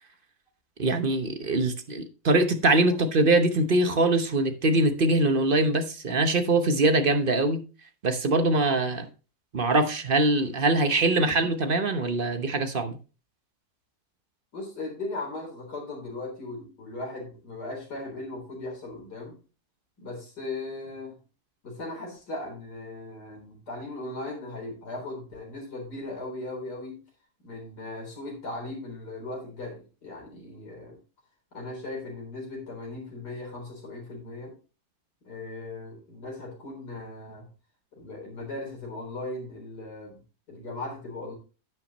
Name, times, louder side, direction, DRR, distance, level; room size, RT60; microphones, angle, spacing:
voice 1, 0.8-7.6 8.0-9.1 9.5-13.0, right 2 dB, 40° right, 0.9 m, -23 dB
voice 2, 14.5-19.4 20.0-21.1 21.6-27.0 27.4-31.0 31.5-34.5 35.2-37.5 37.9-40.2 40.5-41.4, left 2 dB, 90° left, 4.5 m, -38 dB
10.5 x 8.7 x 3.0 m
omnidirectional pair, 1.7 m